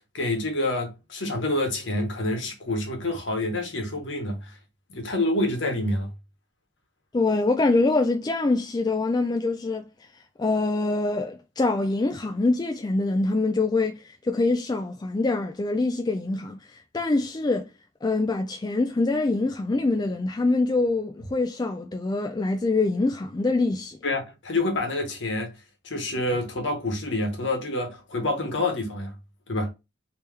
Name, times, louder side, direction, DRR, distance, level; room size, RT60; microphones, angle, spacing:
voice 1, 0.1-4.5 4.9-6.1 24.0-25.5 25.8-29.1 29.5-29.7, left 2 dB, 65° left, 1.1 m, -27 dB
voice 2, 7.1-9.9 10.4-17.7 18.0-24.0, left 3 dB, 20° left, 0.3 m, -24 dB
3.5 x 2.9 x 3.3 m
head